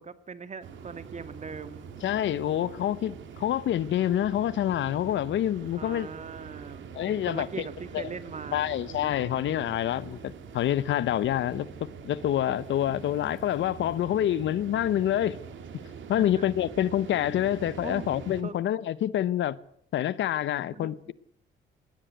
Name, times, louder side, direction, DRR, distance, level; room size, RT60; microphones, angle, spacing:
voice 1, 0.0-1.9 4.4-4.5 5.7-8.8 16.2-16.4 17.8-18.1 18.4-18.6 20.7-21.1, right 5 dB, 35° right, 1.9 m, -41 dB
sound 1, 0.6-18.4, right 6 dB, 75° right, 3.4 m, -44 dB
voice 2, 2.0-6.1 6.9-7.7 7.9-8.1 8.5-15.4 16.1-19.6 19.9-21.1, left 11 dB, 70° left, 0.9 m, -27 dB
20.5 x 16.5 x 7.9 m
cardioid pair, 90°, 20 cm